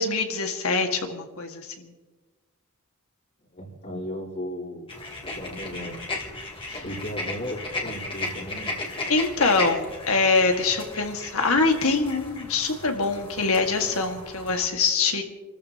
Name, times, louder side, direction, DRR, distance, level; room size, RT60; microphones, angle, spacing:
voice 1, 0.0-1.9 6.7-6.8 9.1-15.2, left 4 dB, 65° left, 4 dB, 1.9 m, -24 dB
voice 2, 3.5-4.9 5.2-6.0 6.8-8.7, equal, 45° left, -7 dB, 3.9 m, -35 dB
sound 1, 4.9-14.6, left 2 dB, 25° left, 2.5 m, -35 dB
29.0 x 14.0 x 2.9 m, 1.3 s
head